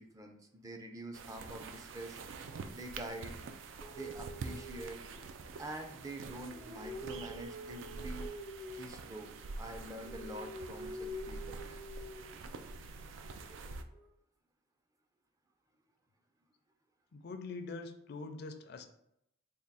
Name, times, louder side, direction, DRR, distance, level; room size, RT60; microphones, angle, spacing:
voice 1, 0.0-2.2 2.7-3.4 3.9-5.0 5.6-8.3 8.7-9.3 9.6-11.6, right 1 dB, 20° right, 4 dB, 0.4 m, -46 dB
sound 1, 1.1-13.8, right 3 dB, 85° right, 0.4 m, -46 dB
sound 2, 3.8-5.5 6.3-8.9 9.8-12.4 13.5-14.1, equal, 70° right, 1.4 m, -47 dB
voice 2, 17.1-18.9, left 3 dB, 60° left, 7 dB, 0.4 m, -44 dB
3.5 x 2.3 x 4.0 m, 0.78 s
head